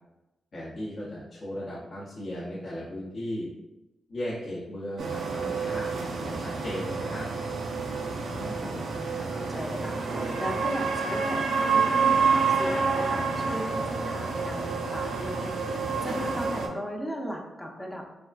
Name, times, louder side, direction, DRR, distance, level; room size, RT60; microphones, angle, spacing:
voice 1, 0.5-3.5 4.1-7.3, left 1 dB, 50° left, -8 dB, 0.7 m, -36 dB
sound 1, 5.0-16.7, right 4 dB, 75° right, 0.4 m, -28 dB
voice 2, 8.1-15.6 16.0-18.1, equal, 10° left, 0 dB, 0.5 m, -37 dB
3.4 x 2.4 x 2.3 m, 1.0 s
cardioid pair, 80°, 0 cm